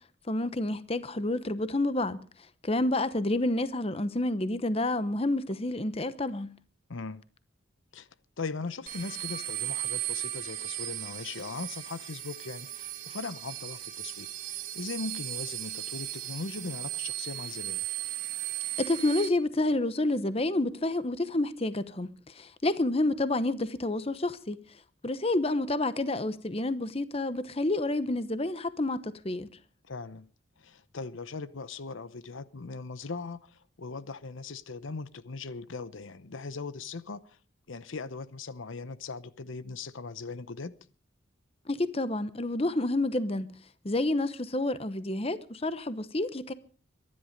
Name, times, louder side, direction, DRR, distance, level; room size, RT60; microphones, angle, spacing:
voice 1, 0.3-2.2 2.6-6.5 18.8-22.1 22.3-24.6 25.0-29.5 41.7-43.5 43.8-46.5, left 2 dB, 30° left, 0.9 m, -29 dB
voice 2, 6.9-7.2 7.9-8.1 8.4-17.8 29.8-30.3 30.6-37.4 37.7-40.7, left 4 dB, 70° left, 0.8 m, -39 dB
sound 1, 8.9-19.3, right 14 dB, 40° right, 2.3 m, -36 dB
23.0 x 11.0 x 5.2 m
head